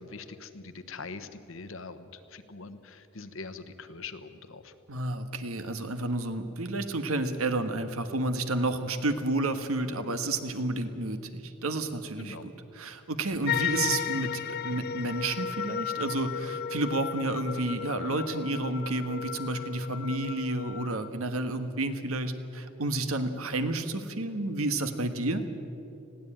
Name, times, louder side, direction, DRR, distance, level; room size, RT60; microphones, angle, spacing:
voice 1, 0.0-4.7 12.2-12.5, left 4 dB, 65° left, 11 dB, 1.1 m, -43 dB
voice 2, 4.9-25.4, right 2 dB, 80° right, 9 dB, 1.4 m, -31 dB
sound 1, 13.5-21.1, left 8 dB, 45° left, 0.5 m, -34 dB
20.5 x 15.5 x 8.9 m, 2.8 s
head